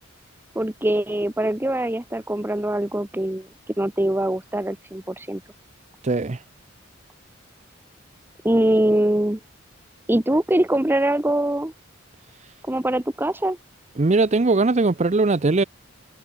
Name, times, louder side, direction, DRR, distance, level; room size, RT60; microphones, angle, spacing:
voice 1, 0.5-3.5 3.8-5.4 8.4-9.4 10.1-11.7 12.6-13.6, right 1 dB, 10° right, 0.9 m, -23 dB
voice 2, 6.0-6.4 14.0-15.6, right 3 dB, 35° right, 0.6 m, -19 dB
head